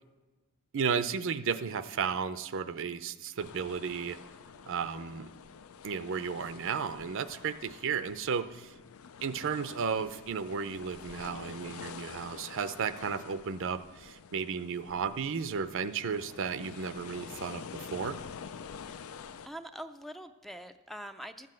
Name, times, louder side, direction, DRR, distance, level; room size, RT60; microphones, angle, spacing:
voice 1, 0.7-4.2 4.7-5.3 5.8-8.7 9.2-17.6 17.9-18.2, right 6 dB, 60° right, 13 dB, 0.5 m, -34 dB
sound 1, 3.4-19.5, left 6 dB, 70° left, 0.4 m, -47 dB
voice 2, 18.8-21.5, equal, ahead, 9 dB, 0.4 m, -45 dB
12.5 x 7.6 x 7.7 m, 1.2 s
head